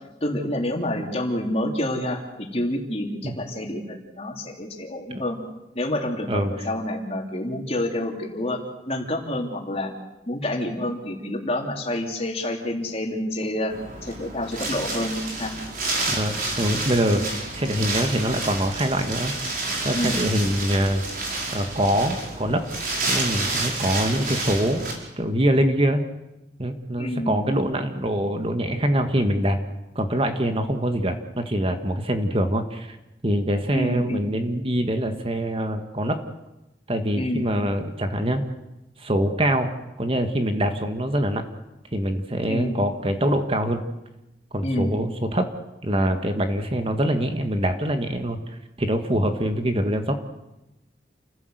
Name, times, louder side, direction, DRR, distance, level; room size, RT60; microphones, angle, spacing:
voice 1, 0.2-5.4 5.8-9.9 10.3-13.8 14.0-15.5 17.2-17.3 19.9-20.2 27.0-27.4 33.7-34.4 37.2-37.5 42.5-42.8 44.6-45.0, left 1 dB, 35° left, 2 dB, 3.5 m, -28 dB
voice 2, 6.3-6.6 16.1-21.0 21.5-22.6 23.1-24.8 25.2-26.0 26.6-29.6 29.9-33.0 33.2-36.2 36.9-38.4 39.0-39.7 40.0-41.4 41.9-43.8 44.5-45.5 45.8-50.2, equal, 30° right, 7 dB, 1.7 m, -24 dB
Wind, 13.7-24.9, right 2 dB, 50° right, 5.3 m, -29 dB
29.0 x 16.0 x 8.1 m, 0.96 s
head